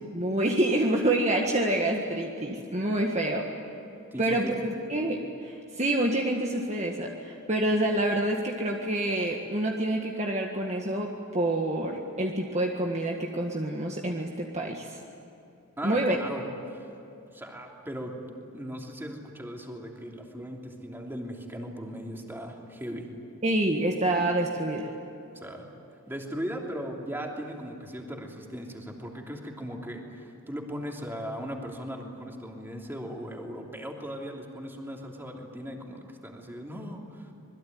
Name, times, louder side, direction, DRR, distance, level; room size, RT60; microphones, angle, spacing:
voice 1, 0.1-3.5 4.2-15.0 15.8-16.2 23.4-24.9, right 1 dB, 35° right, 0 dB, 1.7 m, -27 dB
voice 2, 4.1-4.5 15.8-16.9 17.3-18.2 18.5-23.0 25.3-25.7 26.1-37.3, equal, 10° right, 0 dB, 3.1 m, -38 dB
26.5 x 21.0 x 9.5 m, 2.8 s
head